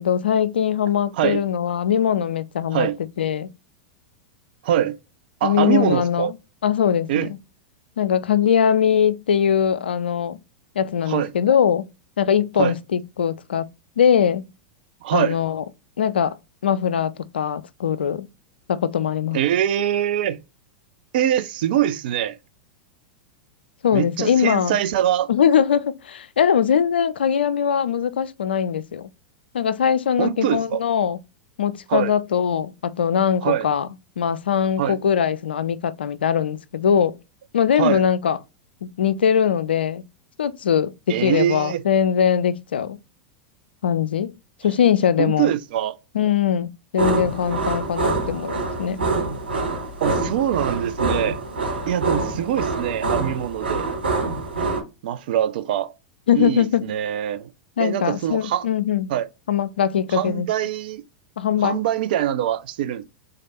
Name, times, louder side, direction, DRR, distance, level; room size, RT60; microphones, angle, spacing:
voice 1, 0.0-2.9 3.2-3.5 5.4-6.4 6.6-7.3 8.0-10.4 10.8-11.9 12.2-13.7 14.0-14.5 15.1-15.6 16.0-16.4 16.6-18.3 18.7-19.4 23.8-24.8 25.3-29.1 29.5-31.2 31.6-33.9 34.2-37.2 37.5-38.4 39.0-40.0 40.4-43.0 43.8-44.3 44.6-45.5 46.1-49.0 56.3-56.8 57.8-59.1 59.5-60.5 61.4-61.8, left 8 dB, 80° left, 0.4 m, -21 dB
voice 2, 4.6-5.0 5.4-6.3 7.1-7.3 11.1-11.3 12.6-12.7 15.0-15.4 19.3-20.4 21.1-22.4 23.9-25.3 30.2-30.8 31.9-32.1 33.4-33.7 34.8-35.0 37.8-38.0 41.1-41.8 45.2-45.9 50.0-51.4 51.9-53.9 55.0-55.9 56.3-57.5 57.8-58.6 59.1-59.3 60.1-61.0 61.6-63.0, right 11 dB, 60° right, 0.6 m, -23 dB
sound 1, 47.0-54.8, right 3 dB, 80° right, 2.3 m, -25 dB
3.8 x 3.3 x 4.1 m
hypercardioid pair, 95°, 6 cm